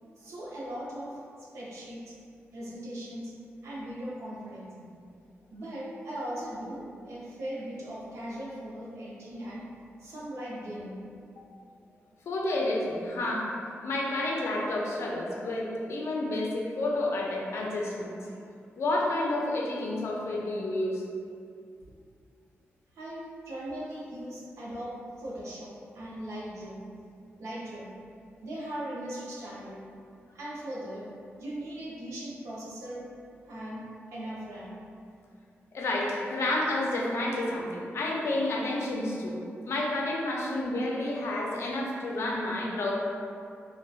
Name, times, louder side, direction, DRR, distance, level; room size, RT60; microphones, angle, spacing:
voice 1, 0.2-2.2 2.5-3.3 3.6-4.9 5.5-9.7 10.0-11.0 22.9-26.8 27.4-27.9 28.4-29.8 30.3-31.0 31.4-33.0 33.4-34.8, right 1 dB, 90° right, -6 dB, 0.5 m, -39 dB
voice 2, 12.3-18.3 18.8-21.0 35.7-39.4 39.6-42.9, left 1 dB, 70° left, -2 dB, 0.4 m, -30 dB
2.5 x 2.1 x 2.3 m, 2.4 s
cardioid pair, 80°, 5 cm